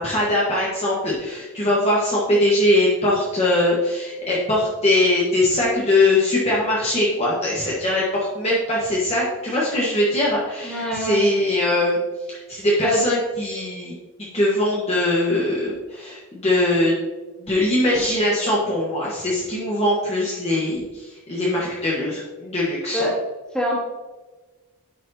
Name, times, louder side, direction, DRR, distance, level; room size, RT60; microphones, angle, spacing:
voice 1, 0.0-12.0 12.5-13.9 14.3-17.0 17.4-23.0, left 1 dB, 30° left, -6 dB, 1.4 m, -21 dB
voice 2, 10.6-11.2 12.8-13.0 22.9-23.2 23.5-23.8, left 1 dB, 5° left, -6 dB, 2.3 m, -24 dB
9.9 x 6.2 x 2.9 m, 1.2 s
head